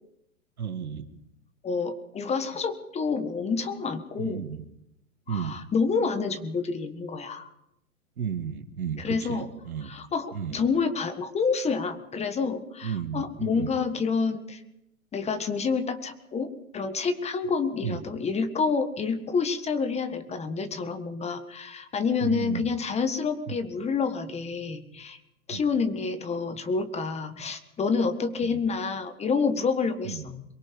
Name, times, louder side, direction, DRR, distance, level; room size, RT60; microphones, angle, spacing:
voice 1, 0.6-1.1 4.2-4.6 5.3-5.6 8.2-9.9 10.3-10.6 12.8-13.7 17.8-18.0 22.2-22.6 23.5-23.6 25.5-25.6 28.4-28.6 30.1-30.3, right 7 dB, 80° right, 8 dB, 2.2 m, -33 dB
voice 2, 1.6-4.4 5.3-7.5 9.0-9.5 9.8-14.6 15.1-25.2 25.5-30.4, left 5 dB, 15° left, 10 dB, 1.5 m, -28 dB
23.0 x 22.5 x 5.3 m, 0.82 s
hypercardioid pair, 120°, 43 cm